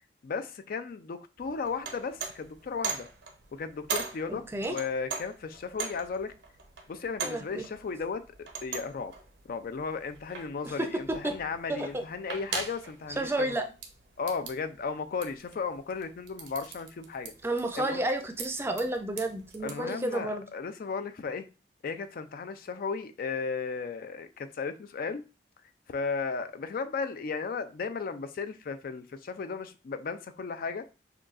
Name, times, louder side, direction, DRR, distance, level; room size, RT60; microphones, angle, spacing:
voice 1, 0.2-3.1 3.5-6.3 6.9-9.1 9.5-13.6 14.2-17.3 17.7-18.0 19.6-21.4 21.8-25.2 25.9-30.8, left 5 dB, 55° left, 10 dB, 0.4 m, -35 dB
sound 1, 1.4-19.8, right 5 dB, 90° right, 0.8 m, -42 dB
voice 2, 4.3-4.7 7.2-7.7 10.6-11.4 11.7-12.0 13.2-13.6 17.4-20.4, right 1 dB, 15° right, 6 dB, 0.4 m, -31 dB
6.5 x 2.3 x 2.4 m, 0.32 s
head